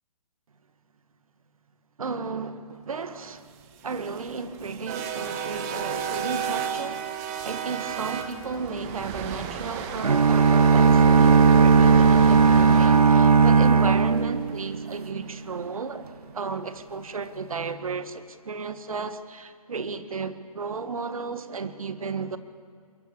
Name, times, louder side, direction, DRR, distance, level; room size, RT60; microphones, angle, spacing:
voice 1, 2.0-7.2 7.4-16.1 16.3-22.4, right 4 dB, 65° right, 10 dB, 1.8 m, -34 dB
sound 1, 3.6-15.8, right 7 dB, 25° right, 1.8 m, -35 dB
sound 2, 10.0-15.0, right 5 dB, 80° right, 0.9 m, -17 dB
27.5 x 22.0 x 7.0 m, 2.3 s
figure-of-eight pair, 140°, 19 cm